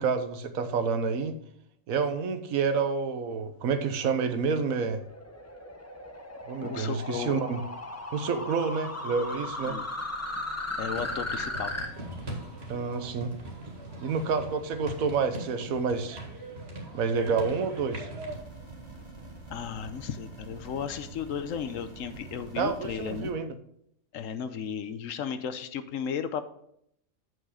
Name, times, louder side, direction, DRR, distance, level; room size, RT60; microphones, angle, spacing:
voice 1, 0.0-1.3 1.9-5.0 6.4-7.6 8.1-9.8 12.7-13.3 14.0-16.2 16.9-18.1 22.6-23.5, right 5 dB, 80° right, 9 dB, 1.3 m, -28 dB
sound 1, 4.2-11.9, left 1 dB, 15° left, 0.6 m, -37 dB
voice 2, 6.6-7.4 9.7-9.8 10.8-11.7 19.5-23.3 24.1-26.4, left 7 dB, 70° left, 11 dB, 1.0 m, -34 dB
sound 2, 10.9-18.4, right 1 dB, 50° right, 2.3 m, -40 dB
sound 3, 18.3-23.3, right 2 dB, 20° right, 1.9 m, -46 dB
7.9 x 5.7 x 4.9 m, 0.72 s
omnidirectional pair, 1.5 m